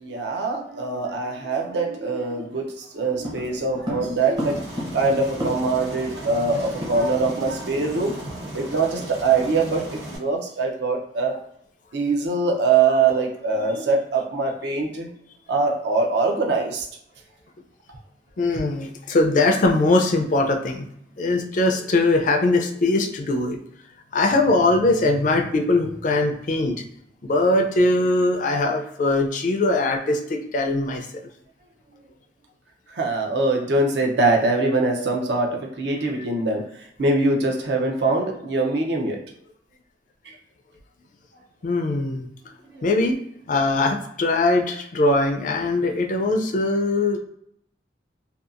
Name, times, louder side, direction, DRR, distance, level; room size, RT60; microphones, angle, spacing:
voice 1, 0.0-4.6 4.9-8.1 8.5-11.3 11.9-15.1 15.5-16.9 32.9-36.6 37.0-39.2, right 3 dB, 70° right, 1 dB, 0.6 m, -23 dB
sound 1, 3.2-5.9 6.2-6.3 6.5-7.5 7.8-8.0 8.4-8.6, equal, 25° right, 0.6 m, -33 dB
Aircraft, 4.4-10.2, right 1 dB, 85° right, 1.2 m, -36 dB
voice 2, 18.4-20.9 21.2-23.6 24.1-26.8 27.2-31.1 41.6-42.3 42.8-43.2 43.5-47.2, left 2 dB, 45° left, 4 dB, 0.4 m, -21 dB
2.7 x 2.3 x 2.4 m, 0.71 s
head